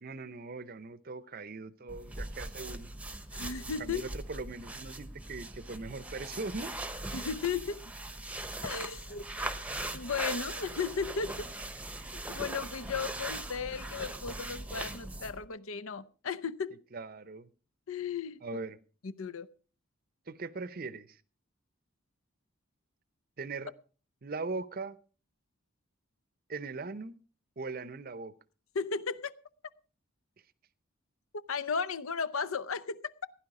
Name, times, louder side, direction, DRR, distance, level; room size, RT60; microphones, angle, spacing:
voice 1, 0.0-2.9 3.8-6.7 12.0-12.1 16.9-17.5 18.4-18.8 20.3-21.2 23.4-23.7 24.2-25.0 26.5-27.2 27.6-28.3, right 3 dB, 45° right, 0.6 m, -40 dB
sound 1, 1.9-15.5, right 2 dB, 5° right, 0.8 m, -40 dB
voice 2, 3.3-4.0 7.1-7.8 8.6-9.2 9.9-11.5 12.1-16.7 17.9-18.4 19.0-19.5 28.7-29.3 31.5-33.3, left 5 dB, 75° left, 0.7 m, -35 dB
16.0 x 10.5 x 4.8 m
head